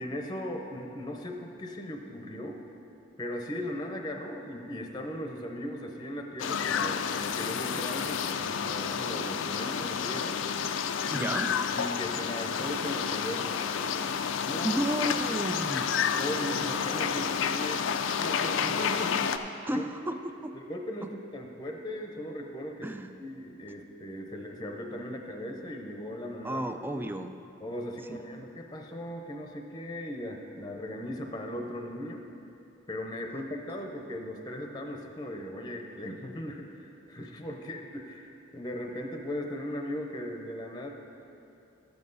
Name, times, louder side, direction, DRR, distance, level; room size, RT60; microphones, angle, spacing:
voice 1, 0.0-2.6 3.2-10.4 11.1-13.6 14.4-14.9 16.2-19.2 19.7-19.8 20.5-22.9 23.2-26.6 27.6-32.2 32.9-41.0, left 1 dB, 20° left, 2 dB, 0.7 m, -38 dB
sound 1, 6.4-19.4, left 7 dB, 80° left, 0.4 m, -30 dB
voice 2, 11.1-11.5 14.6-15.9 19.6-20.6 21.0-21.1 22.8-23.1 26.4-27.3 28.1-28.4, right 1 dB, 10° right, 8 dB, 0.3 m, -33 dB
13.0 x 7.6 x 4.0 m, 2.7 s
head